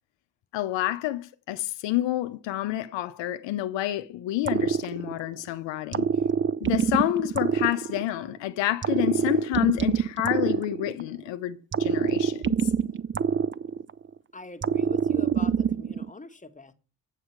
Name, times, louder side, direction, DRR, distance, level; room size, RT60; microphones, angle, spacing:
voice 1, 0.5-6.1 6.6-12.7, left 15 dB, 80° left, 0.7 m, -29 dB
sound 1, 4.4-5.4 5.9-8.3 8.8-11.2 11.7-14.1 14.6-16.1, right 7 dB, 30° right, 0.5 m, -25 dB
voice 2, 14.3-16.7, left 3 dB, 15° left, 1.4 m, -43 dB
8.2 x 7.2 x 4.6 m
hypercardioid pair, 40°, 43 cm